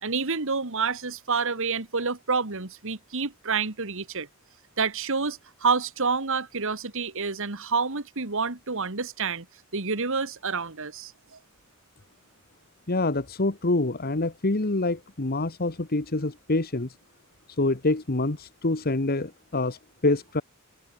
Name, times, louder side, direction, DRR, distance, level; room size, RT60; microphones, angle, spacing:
voice 1, 0.0-4.3 4.8-9.5 9.7-11.4, right 4 dB, 65° right, 2.0 m, -28 dB
voice 2, 12.9-16.9 17.6-20.4, left 2 dB, 45° left, 1.4 m, -26 dB
head